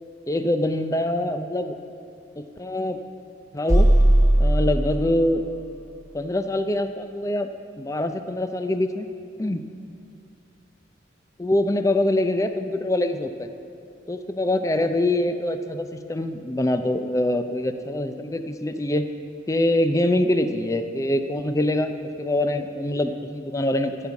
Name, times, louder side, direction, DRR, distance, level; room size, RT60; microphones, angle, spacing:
voice 1, 0.3-1.8 2.4-3.0 3.5-3.9 4.4-5.4 6.1-7.5 7.8-9.1 9.4-9.6 11.4-13.5 14.1-19.0 19.5-24.0, left 1 dB, 15° left, 8 dB, 0.5 m, -24 dB
sound 1, 3.7-5.5, right 1 dB, 15° right, 1.0 m, -18 dB
15.0 x 5.3 x 8.2 m, 2.6 s
head